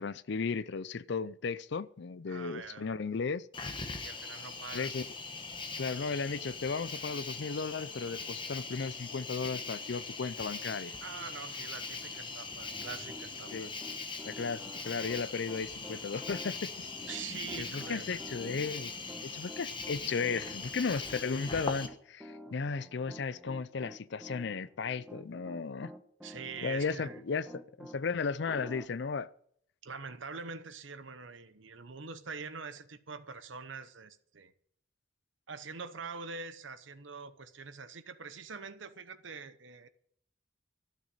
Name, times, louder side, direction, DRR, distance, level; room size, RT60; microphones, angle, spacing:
voice 1, 0.0-3.5 4.7-5.1 5.8-10.9 13.5-13.7 14.2-16.9 17.6-18.9 19.2-25.9 26.6-29.3, left 5 dB, 60° left, 0.5 m, -35 dB
voice 2, 2.3-3.0 4.0-4.9 11.0-13.8 17.1-18.2 26.2-27.2 29.8-34.5 35.5-39.9, right 5 dB, 75° right, 1.0 m, -44 dB
Cricket, 3.5-21.9, left 4 dB, 25° left, 1.1 m, -41 dB
Piano, 12.8-28.0 28.5-28.8, equal, 5° right, 1.1 m, -50 dB
12.5 x 6.5 x 9.8 m
head